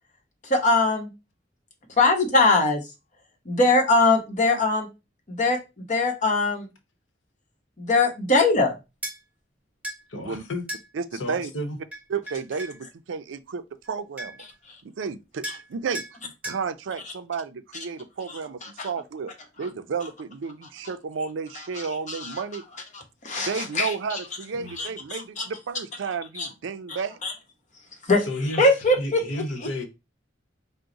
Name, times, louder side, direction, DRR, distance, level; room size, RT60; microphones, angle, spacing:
voice 1, 0.4-1.1 2.0-2.8 3.4-4.9 5.3-6.7 7.8-8.8 18.3-18.9 21.7-22.4 22.9-24.2 24.8-25.5 26.4-26.5 26.9-27.3 28.1-28.2 28.6-29.2 29.6-29.9, left 2 dB, 40° left, 1.0 m, -22 dB
sound 1, 9.0-9.2 9.8-10.0 10.7-10.9 11.9-12.8 13.8-13.9 14.2-14.5 15.4-15.7 15.9-16.1 16.4-16.6, right 1 dB, 10° right, 1.2 m, -35 dB
voice 2, 10.1-10.6 11.1-11.8 24.5-24.7 28.2-28.7 29.0-29.9, left 1 dB, 90° left, 0.8 m, -32 dB
voice 3, 10.9-11.5 12.1-14.4 14.8-19.3 19.6-22.6 23.4-27.2, right 5 dB, 85° right, 0.4 m, -32 dB
4.7 x 2.1 x 3.8 m
head